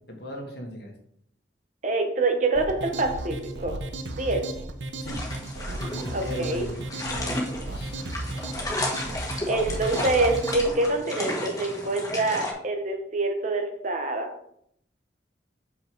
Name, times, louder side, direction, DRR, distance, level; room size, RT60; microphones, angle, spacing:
voice 1, 0.1-0.9 5.0-5.2 5.8-8.0, equal, 60° left, 2 dB, 1.7 m, -37 dB
voice 2, 1.8-3.7 4.2-4.4 6.1-6.7 9.4-14.3, right 2 dB, 40° right, 4 dB, 1.1 m, -26 dB
sound 1, 2.5-10.7, right 2 dB, 80° right, 0.9 m, -35 dB
sound 2, 5.0-12.5, left 1 dB, 20° left, 1.5 m, -33 dB
6.8 x 5.6 x 4.6 m, 0.69 s
head